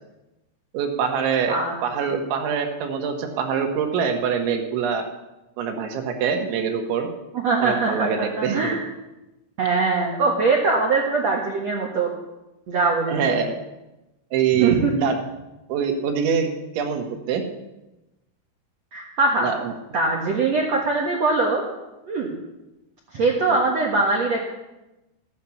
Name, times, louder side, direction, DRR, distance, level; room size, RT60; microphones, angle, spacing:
voice 1, 0.7-5.1 5.6-7.1 7.6-8.8 13.1-13.6 14.3-15.2 15.7-17.4 19.4-19.7 23.5-23.6, right 6 dB, 75° right, 4 dB, 3.8 m, -24 dB
voice 2, 7.4-8.1 8.4-8.8 9.6-12.1 12.7-13.4 14.6-14.9 18.9-19.5 19.9-21.6 22.1-22.3 23.1-24.4, right 3 dB, 90° right, -1 dB, 1.4 m, -22 dB
15.0 x 10.5 x 7.1 m, 0.99 s
omnidirectional pair, 5.6 m